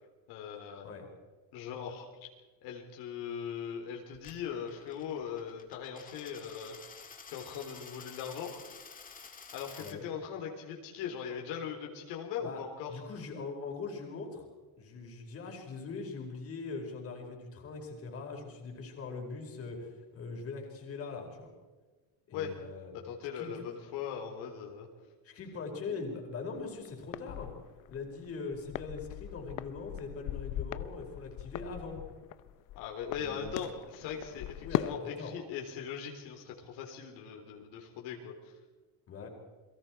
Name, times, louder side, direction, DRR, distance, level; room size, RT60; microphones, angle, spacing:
voice 1, 0.3-0.9 1.5-2.0 2.6-6.8 7.3-8.5 9.5-12.9 22.3-22.5 22.9-24.9 32.8-38.3, left 7 dB, 80° left, 1 dB, 3.9 m, -40 dB
Coin (dropping), 4.1-10.0, left 5 dB, 20° left, 1.9 m, -51 dB
voice 2, 12.9-14.5 14.8-21.5 22.3-22.9 23.3-23.7 25.2-27.5 27.9-32.0 33.1-33.7 34.6-35.4 39.1-39.3, left 4 dB, 35° left, 1 dB, 4.8 m, -41 dB
sound 1, 26.6-35.0, left 14 dB, 50° left, 0.7 m, -39 dB
30.0 x 22.5 x 4.6 m, 1.3 s
cardioid pair, 170°, 39 cm